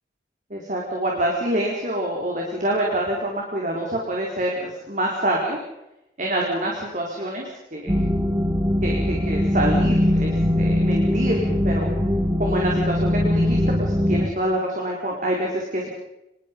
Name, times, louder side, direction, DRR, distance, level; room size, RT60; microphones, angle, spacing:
voice 1, 0.5-5.6 6.2-7.9 8.8-11.9 12.4-15.9, right 1 dB, 45° right, -1 dB, 4.4 m, -26 dB
sound 1, 7.9-14.3, left 1 dB, 15° right, 2.3 m, -21 dB
26.0 x 22.5 x 5.4 m, 0.89 s
head